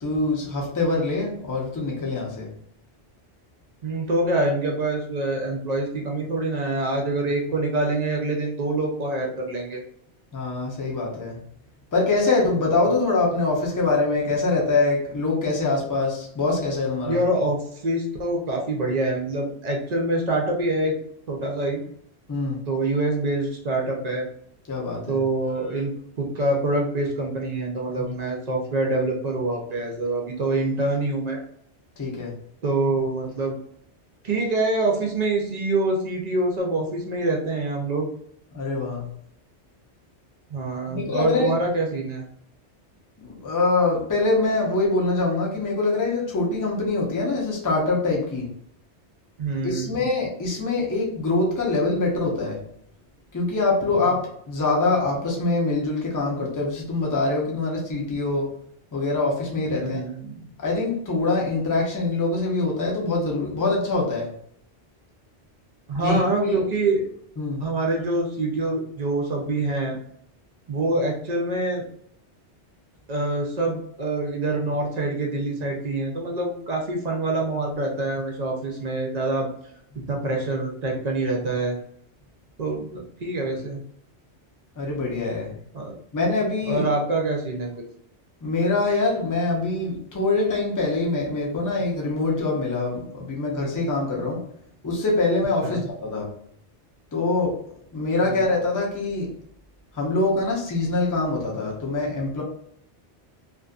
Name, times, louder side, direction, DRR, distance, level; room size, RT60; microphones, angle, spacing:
voice 1, 0.0-2.5 10.3-11.4 11.9-17.2 22.3-22.6 24.7-25.2 28.0-28.1 32.0-32.3 38.5-39.1 40.9-41.5 43.2-48.5 49.6-52.6 53.3-58.5 58.9-60.0 60.6-64.3 66.0-66.6 67.4-67.6 84.8-85.5 86.1-86.9 88.4-94.4 94.8-96.3 97.1-97.6 97.9-99.3 99.9-102.4, left 3 dB, 25° left, -2 dB, 0.5 m, -24 dB
voice 2, 3.8-9.8 12.8-12.9 17.0-20.9 21.3-21.8 22.7-24.3 25.1-31.4 32.6-33.6 34.2-38.1 40.5-42.2 49.4-50.0 59.8-60.5 65.9-67.1 67.6-70.0 70.7-71.8 73.1-79.5 80.1-81.8 82.6-83.8 85.7-86.0 86.6-87.7 95.6-95.8 98.2-98.4, right 2 dB, 50° right, 0 dB, 0.5 m, -25 dB
2.5 x 2.5 x 2.3 m, 0.67 s
omnidirectional pair, 1.2 m